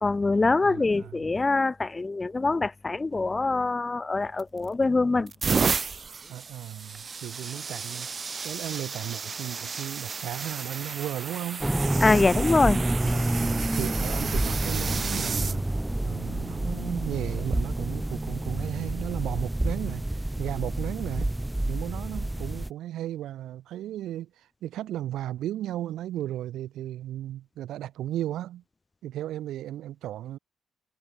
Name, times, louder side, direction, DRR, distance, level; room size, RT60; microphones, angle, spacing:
voice 1, 0.0-5.3 12.0-12.8 13.2-13.3, left 3 dB, 25° left, 0.5 m, -24 dB
voice 2, 0.6-1.1 6.3-8.1 8.4-11.7 13.0-15.6 16.0-20.0 20.4-21.3 21.7-24.3 24.6-28.6 29.0-30.4, right 13 dB, 80° right, 1.5 m, -35 dB
sound 1, 4.4-4.7 5.2-15.6 16.4-16.7 18.2-18.4, right 5 dB, 40° right, 0.5 m, -33 dB
sound 2, 11.6-22.7, right 1 dB, 10° right, 1.8 m, -28 dB
cardioid pair, 90°, 0 cm